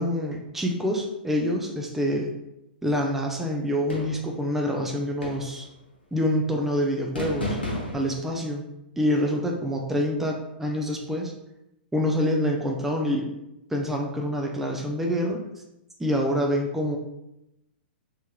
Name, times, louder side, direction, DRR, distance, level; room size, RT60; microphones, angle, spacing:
voice 1, 0.0-2.3 2.8-5.7 6.1-7.6 7.9-8.6 9.0-11.3 11.9-13.3 13.7-15.4 16.0-17.0, equal, 5° right, 0 dB, 0.4 m, -26 dB
sound 1, 3.9-4.4 5.2-5.7 7.1-8.2, left 1 dB, 90° left, 1.0 m, -32 dB
3.4 x 3.0 x 2.2 m, 0.88 s
figure-of-eight pair, 110°, 5 cm